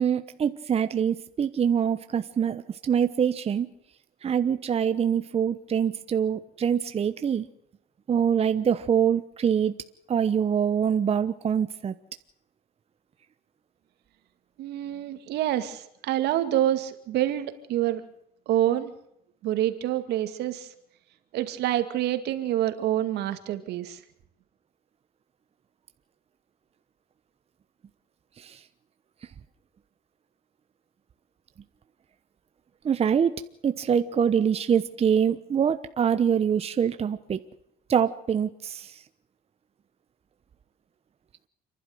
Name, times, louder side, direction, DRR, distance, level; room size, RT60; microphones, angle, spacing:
voice 1, 0.0-3.7 4.2-7.5 8.1-9.7 10.1-11.9 28.4-28.6 32.8-37.4 37.9-39.0, right 8 dB, 35° right, 10 dB, 1.1 m, -24 dB
voice 2, 14.6-18.0 18.5-18.9 19.4-20.7 21.3-24.0, right 12 dB, 80° right, 9 dB, 2.4 m, -27 dB
29.5 x 12.0 x 8.0 m, 0.77 s
cardioid pair, 110°, 17 cm